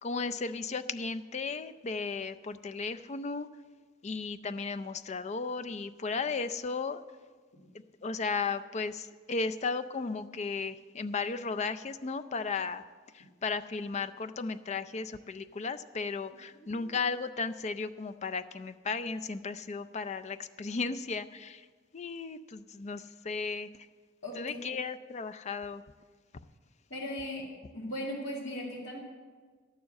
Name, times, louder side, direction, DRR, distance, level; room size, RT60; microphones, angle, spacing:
voice 1, 0.0-3.5 4.0-7.0 8.0-12.8 13.1-21.7 21.9-23.7 24.3-25.8, left 4 dB, 35° left, 10 dB, 0.4 m, -35 dB
voice 2, 24.2-24.7 26.9-27.4 27.7-29.0, left 1 dB, 65° left, -7 dB, 2.3 m, -38 dB
11.5 x 7.1 x 7.5 m, 1.5 s
head